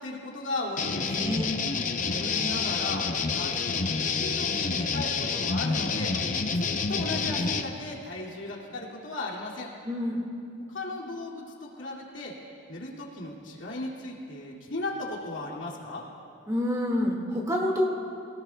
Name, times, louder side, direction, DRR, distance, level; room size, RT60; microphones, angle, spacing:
voice 1, 0.0-1.1 2.0-6.2 6.6-9.7 10.7-12.4 12.7-16.1, left 2 dB, 75° left, -3 dB, 2.4 m, -36 dB
sound 1, 0.8-7.6, left 4 dB, 40° left, 0.7 m, -28 dB
voice 2, 1.1-1.5 6.5-6.6 9.9-10.2 16.5-17.8, left 1 dB, 15° right, -1 dB, 1.9 m, -28 dB
25.0 x 17.5 x 2.3 m, 2.6 s
head